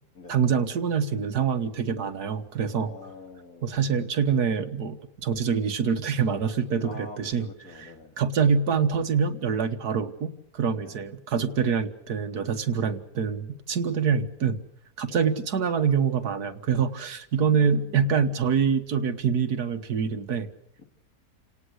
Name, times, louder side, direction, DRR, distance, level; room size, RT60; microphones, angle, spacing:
voice 1, 0.3-2.9 3.6-7.5 7.8-7.9 8.2-14.6 15.0-20.5, right 6 dB, 90° right, 8 dB, 1.9 m, -25 dB
voice 2, 2.8-3.8 6.8-8.1 10.8-11.0 15.1-15.2 17.4-18.3 20.8-20.9, left 2 dB, 65° left, 5 dB, 3.2 m, -45 dB
28.5 x 18.5 x 8.0 m, 0.76 s
omnidirectional pair, 1.6 m